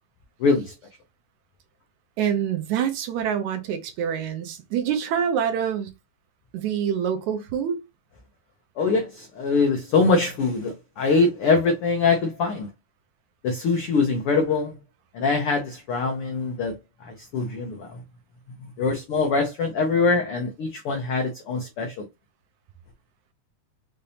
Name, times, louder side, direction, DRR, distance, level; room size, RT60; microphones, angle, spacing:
voice 1, 0.4-0.7 8.8-12.7 13.4-14.8 15.1-16.7 17.0-18.0 18.8-22.0, left 4 dB, 85° left, 1.2 m, -23 dB
voice 2, 2.2-5.9 6.5-7.8, right 8 dB, 75° right, 2.0 m, -26 dB
5.8 x 2.7 x 3.3 m
omnidirectional pair, 3.7 m